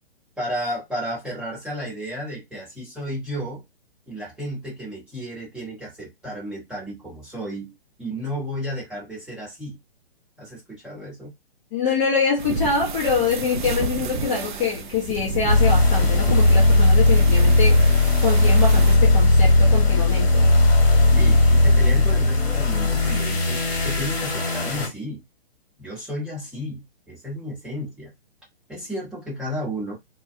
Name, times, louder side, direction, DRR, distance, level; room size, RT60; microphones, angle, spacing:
voice 1, 0.4-3.6 4.1-7.7 8.0-9.8 10.4-11.3 21.2-25.2 25.8-28.1 28.7-29.9, equal, ahead, 1.1 m, -33 dB
voice 2, 11.7-17.8 18.2-20.5, left 5 dB, 30° left, 0.8 m, -25 dB
sound 1, 12.4-19.0, right 4 dB, 50° right, 0.5 m, -31 dB
sound 2, 15.5-24.9, left 2 dB, 70° left, 1.3 m, -17 dB
2.3 x 2.3 x 2.5 m
hypercardioid pair, 140°, 32 cm